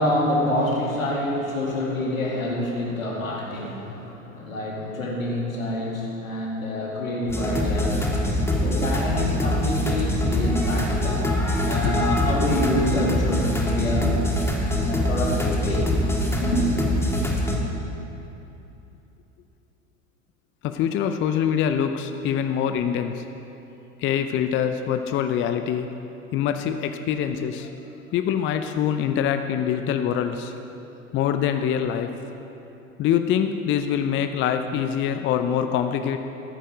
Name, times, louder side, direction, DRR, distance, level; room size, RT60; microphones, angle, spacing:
voice 1, 0.0-8.1 8.6-11.2 11.6-14.1 14.7-15.9 16.4-16.7, left 1 dB, 80° left, -2 dB, 2.5 m, -27 dB
sound 1, 7.3-17.6, left 1 dB, 5° left, 1.8 m, -24 dB
voice 2, 20.6-23.2 24.0-25.9 26.3-27.7 28.1-30.5 31.1-32.2 33.0-36.2, left 9 dB, 30° left, 8 dB, 0.6 m, -24 dB
13.5 x 9.2 x 5.0 m, 2.9 s
hypercardioid pair, 85°, 40 cm